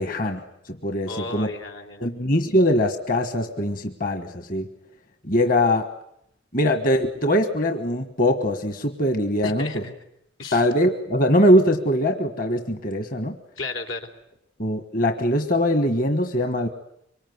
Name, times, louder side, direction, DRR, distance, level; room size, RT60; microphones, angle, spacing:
voice 1, 0.0-1.5 2.0-4.7 5.2-5.9 6.5-9.8 10.5-13.4 14.6-16.7, left 1 dB, 45° left, 7 dB, 1.4 m, -22 dB
voice 2, 1.1-2.1 9.4-9.9 10.4-10.6 13.6-14.1, left 3 dB, 85° left, 4 dB, 3.6 m, -33 dB
25.5 x 24.0 x 9.5 m, 0.77 s
head